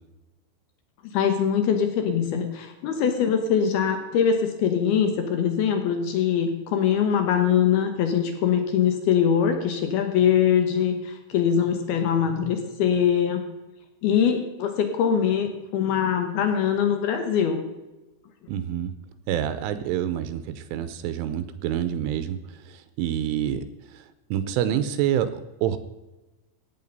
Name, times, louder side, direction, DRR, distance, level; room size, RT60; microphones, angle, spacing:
voice 1, 1.0-13.4 14.0-17.6, left 8 dB, 75° left, 6 dB, 2.3 m, -23 dB
voice 2, 18.5-18.9 19.3-25.8, right 10 dB, 85° right, 12 dB, 3.1 m, -27 dB
16.5 x 9.2 x 5.4 m, 1.1 s
omnidirectional pair, 5.9 m